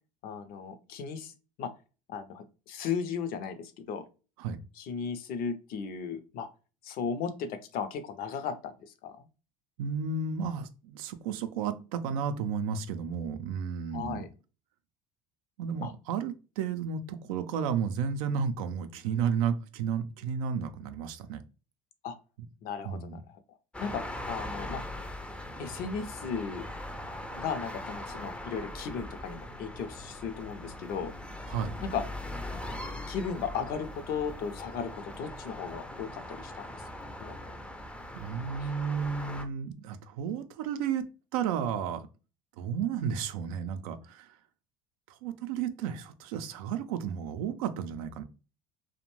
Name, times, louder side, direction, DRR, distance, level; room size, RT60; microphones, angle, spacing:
voice 1, 0.2-1.3 1.6-1.7 2.1-4.1 4.8-6.5 6.8-9.3 13.9-14.3 15.8-15.9 22.0-22.1 22.6-23.2 23.8-24.0 24.3-24.8 25.6-26.7 27.3-31.1 31.8-32.0 33.1-36.8 37.2-37.5, left 6 dB, 60° left, 10 dB, 0.5 m, -36 dB
voice 2, 9.8-14.2 15.6-21.4 22.8-23.2 31.5-31.8 38.1-42.0 42.6-44.4 45.2-48.2, right 7 dB, 85° right, 10 dB, 0.4 m, -32 dB
sound 1, 23.7-39.5, left 1 dB, 5° left, 0.4 m, -41 dB
2.5 x 2.1 x 3.0 m, 0.33 s
supercardioid pair, 90°, 18 cm